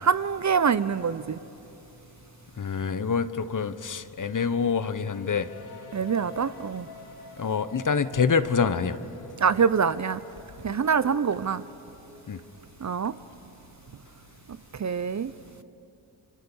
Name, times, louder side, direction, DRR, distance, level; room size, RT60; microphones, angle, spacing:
voice 1, 0.0-1.4 5.9-6.9 9.4-10.2 10.6-11.6 12.8-13.1 14.8-15.3, right 6 dB, 35° right, 15 dB, 0.7 m, -25 dB
voice 2, 2.6-5.5 7.4-9.0 12.3-12.4, left 6 dB, 40° left, 13 dB, 1.2 m, -26 dB
sound 1, 5.1-12.8, left 4 dB, 75° left, 5.9 m, -48 dB
29.5 x 25.0 x 7.3 m, 3.0 s
supercardioid pair, 55°, 48 cm